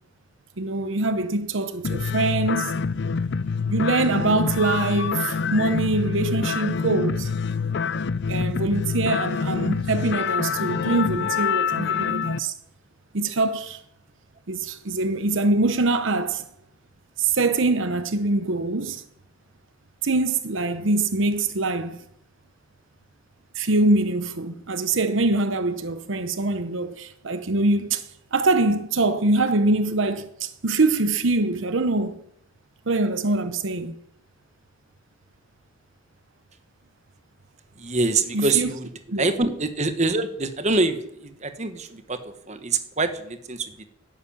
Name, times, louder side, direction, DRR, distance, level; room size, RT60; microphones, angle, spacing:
voice 1, 0.6-2.8 3.7-7.3 8.3-12.5 13.1-13.8 14.5-16.5 17.2-19.0 20.0-22.0 23.5-32.2 32.9-33.9 38.3-38.7 39.1-39.3, right 2 dB, 70° right, 0.9 m, -24 dB
sound 1, 1.8-12.4, left 5 dB, 55° left, 0.5 m, -26 dB
voice 2, 37.7-38.9 39.2-43.8, right 3 dB, 35° right, 1.3 m, -25 dB
12.5 x 11.0 x 8.7 m
head